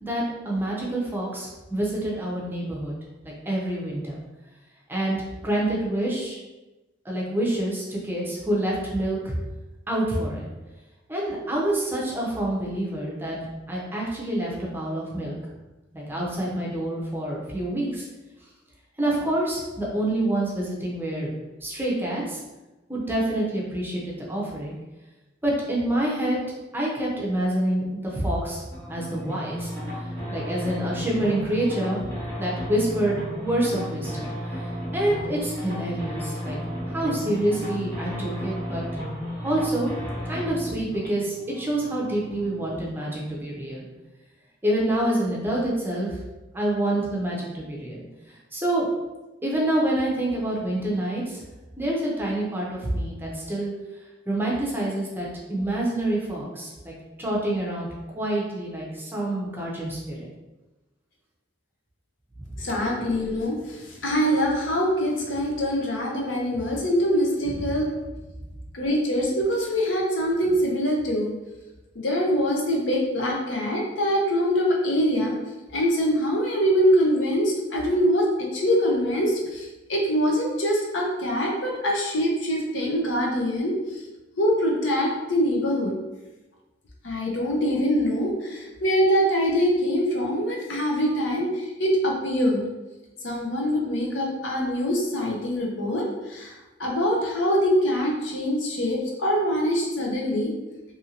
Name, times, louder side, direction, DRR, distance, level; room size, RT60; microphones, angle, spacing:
voice 1, 0.0-2.9 3.5-4.2 4.9-5.2 5.4-6.4 7.0-9.3 9.9-10.5 11.1-13.4 13.7-15.4 15.9-18.1 19.0-21.3 21.6-22.4 22.9-24.7 25.4-26.4 26.7-29.7 30.0-32.0 32.4-34.3 34.6-36.6 36.9-38.8 39.4-39.9 40.2-43.8 44.6-46.2 46.5-48.0 48.5-48.9 49.4-51.4 51.8-53.7 54.3-56.9 57.2-57.9 58.1-60.3 67.5-67.7, right 1 dB, 10° right, -4 dB, 0.6 m, -27 dB
sound 1, 28.7-42.8, equal, 15° left, 1.1 m, -34 dB
voice 2, 62.6-67.9 68.7-71.3 72.0-75.3 75.7-84.0 84.4-85.9 87.0-92.6 93.2-96.5 96.8-100.5, equal, 75° left, -1 dB, 0.7 m, -24 dB
2.7 x 2.5 x 2.8 m, 1.1 s
head